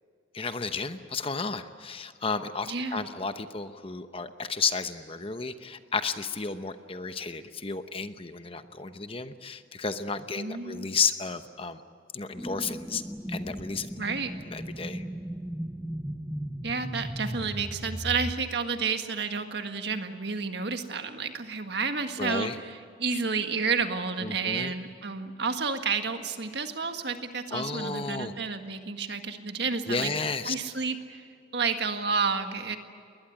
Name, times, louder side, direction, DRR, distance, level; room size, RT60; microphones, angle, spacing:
voice 1, 0.3-11.8 12.1-13.0 13.3-13.9 14.5-15.0 22.2-22.6 24.2-24.7 27.5-28.3 29.9-30.6, left 5 dB, 30° left, 10 dB, 0.9 m, -32 dB
voice 2, 2.7-3.0 10.4-11.0 14.0-14.3 16.6-30.1 30.5-31.3 31.5-32.8, right 5 dB, 60° right, 6 dB, 1.7 m, -30 dB
sound 1, 12.4-18.3, equal, 5° right, 0.7 m, -36 dB
21.0 x 20.5 x 10.0 m, 2.3 s
head